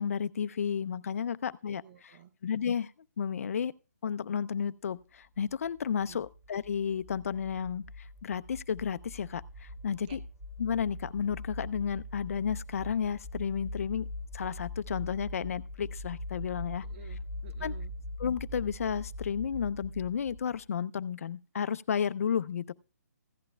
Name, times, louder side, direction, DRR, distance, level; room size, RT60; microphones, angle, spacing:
voice 1, 0.0-2.2 2.4-2.9 3.2-3.7 4.0-7.9 8.2-10.2 10.6-14.1 14.3-16.9 17.6-17.7 18.2-22.7, left 7 dB, 60° left, 0.5 m, -32 dB
voice 2, 1.8-2.3 6.1-6.2 10.1-10.2 16.8-17.9, right 8 dB, 35° right, 0.6 m, -53 dB
sound 1, 5.3-20.7, left 1 dB, 15° right, 2.3 m, -42 dB
15.5 x 10.5 x 2.2 m
hypercardioid pair, 160°, 9 cm